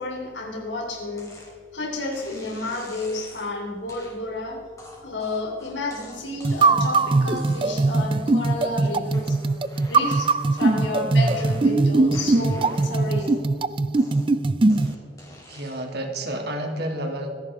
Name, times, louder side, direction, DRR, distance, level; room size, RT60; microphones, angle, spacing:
voice 1, 0.0-1.4 1.7-4.6 5.0-9.4 9.9-13.4, left 2 dB, 80° left, 0 dB, 3.3 m, -31 dB
sound 1, 1.2-1.5 2.1-3.5 3.9-4.2 4.8-6.9 7.3-7.9 8.3-8.8 9.1-11.8 12.1-13.6 14.0-16.0, left 1 dB, 20° left, 3.6 m, -46 dB
sound 2, 6.4-14.9, right 3 dB, 30° right, 0.4 m, -21 dB
voice 2, 15.5-17.3, right 1 dB, 60° right, 2 dB, 2.6 m, -30 dB
26.0 x 11.0 x 3.6 m, 2.1 s
head